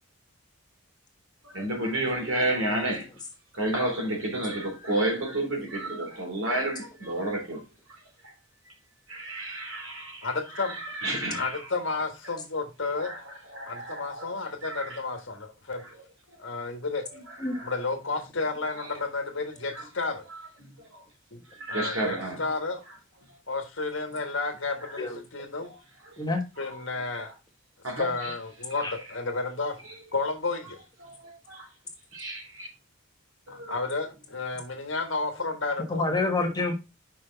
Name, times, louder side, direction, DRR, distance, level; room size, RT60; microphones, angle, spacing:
voice 1, 1.4-3.1 3.5-7.6 7.9-8.3 8.6-8.7 9.1-10.3 10.5-11.7 12.2-12.3 13.0-14.3 14.6-15.0 15.8-16.0 16.3-16.6 17.3-17.7 18.8-18.9 19.7-19.9 20.3-21.0 21.5-22.4 24.8-25.0 25.6-25.8 26.1-26.2 26.6-26.8 27.2-27.3 27.8-28.3 28.8-28.9 29.8-29.9 31.0-31.7 32.1-32.7 33.5-33.7, right 1 dB, 70° right, 3.3 m, -32 dB
voice 2, 10.2-10.8 11.3-13.1 13.7-15.9 16.4-17.3 17.6-20.3 21.3-21.4 21.7-22.8 23.5-25.7 26.6-27.3 28.0-29.8 30.1-30.8 33.5-36.0, left 3 dB, 60° left, 1.6 m, -32 dB
voice 3, 25.0-25.5 26.2-26.4 28.8-28.9 35.9-36.7, left 2 dB, 20° left, 1.3 m, -28 dB
6.3 x 5.6 x 4.0 m
head